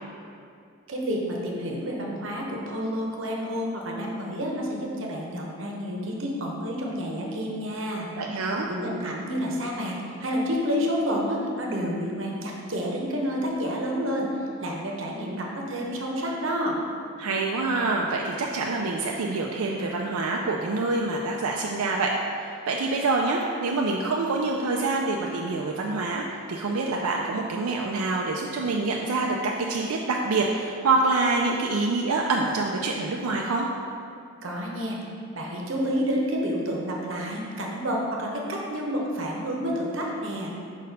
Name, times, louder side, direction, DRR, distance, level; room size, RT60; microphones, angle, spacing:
voice 1, 0.9-8.1 8.7-14.3 14.6-16.8 34.4-35.0 35.3-40.5, equal, 60° right, -1 dB, 1.0 m, -29 dB
voice 2, 8.2-8.7 17.2-22.1 22.7-33.7, right 3 dB, 90° right, -1 dB, 0.4 m, -26 dB
5.3 x 4.2 x 5.3 m, 2.4 s
head